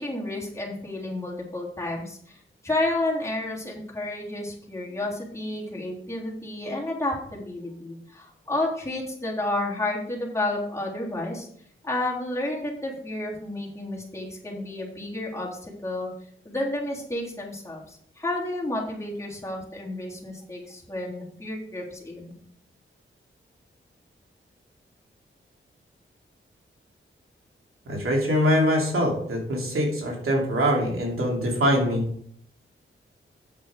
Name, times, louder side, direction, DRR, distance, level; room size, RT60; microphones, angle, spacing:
voice 1, 0.0-2.4 2.6-11.5 11.8-16.1 16.5-22.3, left 2 dB, 15° left, -4 dB, 3.5 m, -31 dB
voice 2, 27.9-32.0, equal, 90° right, -1 dB, 2.8 m, -23 dB
8.7 x 6.7 x 5.0 m, 0.63 s
wide cardioid pair, 80°, 21 cm